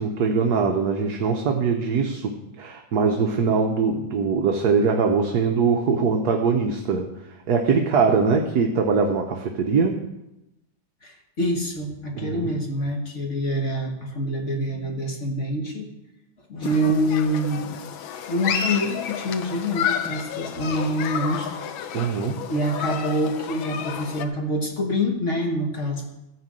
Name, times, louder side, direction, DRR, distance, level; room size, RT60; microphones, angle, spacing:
voice 1, 0.0-7.1 7.5-10.0 12.1-12.5 21.9-22.5, right 5 dB, 60° right, 3 dB, 1.3 m, -22 dB
voice 2, 11.0-15.9 16.5-17.7 18.3-21.5 22.5-26.1, equal, 40° left, 2 dB, 1.5 m, -26 dB
Human group actions, 16.6-24.3, left 8 dB, 85° left, 1.5 m, -31 dB
14.5 x 5.1 x 7.5 m, 0.93 s
omnidirectional pair, 2.2 m